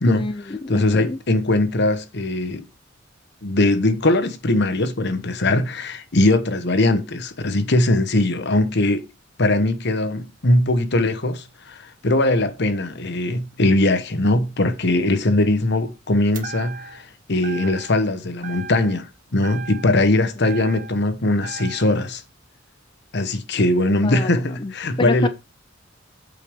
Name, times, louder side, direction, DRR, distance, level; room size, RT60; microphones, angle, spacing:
voice 1, 0.1-1.2 24.0-24.3 24.6-24.7 25.0-25.3, left 3 dB, 25° left, 0.4 m, -26 dB
voice 2, 0.7-2.6 3.4-9.0 9.4-22.2 23.1-25.3, left 2 dB, 60° left, 1.1 m, -20 dB
sound 1, 16.3-17.1 17.4-18.1 18.4-19.1 19.4-21.1 21.4-22.1, right 5 dB, 45° right, 1.3 m, -37 dB
8.4 x 5.2 x 4.9 m
head